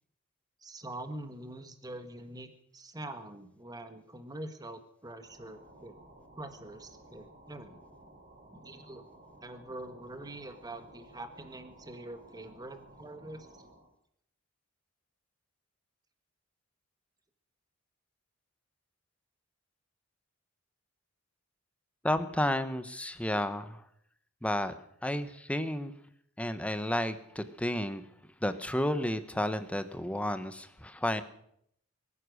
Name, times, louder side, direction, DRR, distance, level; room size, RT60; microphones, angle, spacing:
voice 1, 0.6-5.9 6.4-7.8 8.5-9.0 9.4-13.5, right 1 dB, 20° right, 8 dB, 1.5 m, -44 dB
sound 1, 5.1-13.9, right 1 dB, 40° right, 4.7 m, -56 dB
voice 2, 22.0-23.8 24.4-24.8 25.0-25.9 26.4-28.0 28.4-31.2, left 1 dB, 5° left, 11 dB, 1.0 m, -31 dB
22.0 x 9.9 x 6.4 m, 0.70 s
head